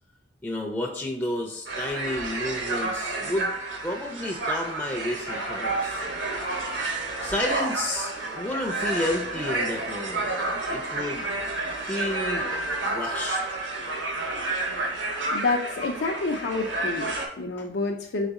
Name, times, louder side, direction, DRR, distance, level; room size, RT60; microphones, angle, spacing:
voice 1, 0.4-3.5 3.8-6.0 7.2-10.3 10.7-11.3 11.8-12.5 12.8-13.6 17.6-17.7, left 1 dB, 10° left, -1 dB, 0.4 m, -31 dB
sound 1, 1.7-17.3, right 2 dB, 80° right, 1.0 m, -30 dB
voice 2, 15.3-18.3, left 3 dB, 70° left, 2 dB, 0.4 m, -28 dB
4.0 x 3.5 x 3.6 m, 0.73 s
head